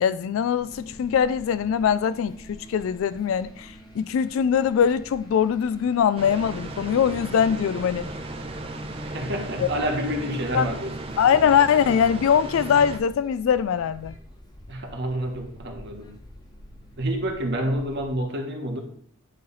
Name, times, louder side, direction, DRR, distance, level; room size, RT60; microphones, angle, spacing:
voice 1, 0.0-8.1 9.6-9.7 10.5-10.7 11.2-14.2, left 7 dB, 70° left, 0.3 m, -22 dB
sound 1, 0.5-18.2, equal, 20° left, 1.1 m, -48 dB
sound 2, 6.2-13.0, right 2 dB, 25° right, 0.7 m, -36 dB
voice 2, 9.0-10.9 14.7-16.1 17.0-18.8, right 1 dB, 55° right, 1.3 m, -28 dB
9.3 x 3.3 x 4.0 m
head